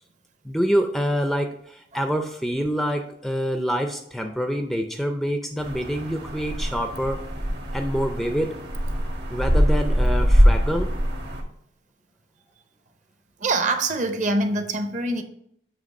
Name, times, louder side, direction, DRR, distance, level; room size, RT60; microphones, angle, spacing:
voice 1, 0.4-7.3 7.7-8.6 9.3-10.9, equal, ahead, 6 dB, 0.4 m, -26 dB
sound 1, 5.6-11.4, equal, 65° right, 1.3 m, -22 dB
voice 2, 13.4-15.2, right 2 dB, 45° right, 7 dB, 0.7 m, -24 dB
7.7 x 3.2 x 5.2 m, 0.71 s
head